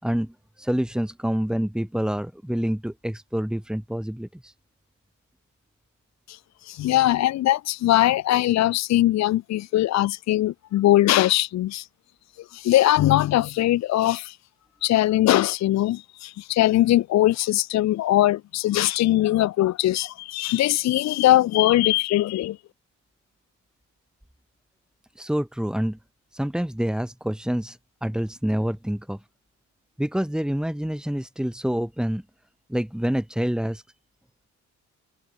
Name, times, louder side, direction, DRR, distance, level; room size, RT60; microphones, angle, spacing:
voice 1, 0.0-4.5 25.2-26.0 26.3-29.2 30.0-32.2 32.7-33.8, equal, ahead, 6.4 m, -27 dB
voice 2, 6.3-11.9 12.4-14.4 14.8-22.6, left 14 dB, 60° left, 0.6 m, -21 dB
cardioid pair, 90°, 30 cm